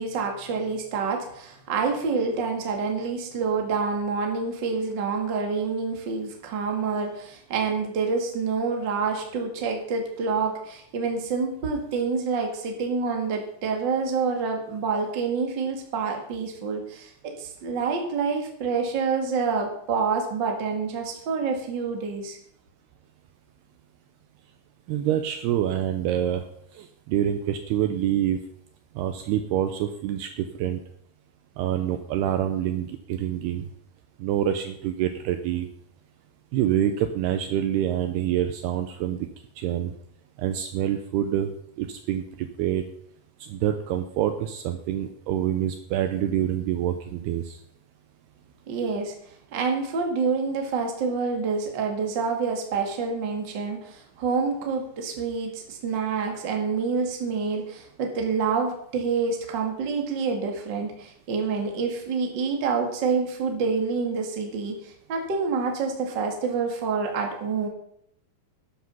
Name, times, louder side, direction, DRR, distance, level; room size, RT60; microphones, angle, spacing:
voice 1, 0.0-22.4 48.7-49.1 49.5-67.7, right 5 dB, 40° right, 2 dB, 1.8 m, -27 dB
voice 2, 24.9-26.4 26.8-28.4 29.0-30.8 31.6-33.7 34.2-35.7 36.5-39.3 39.6-39.9 40.4-41.5 41.8-42.8 43.4-47.6, right 11 dB, 75° right, 8 dB, 2.5 m, -26 dB
12.0 x 10.5 x 5.5 m, 0.70 s
omnidirectional pair, 5.1 m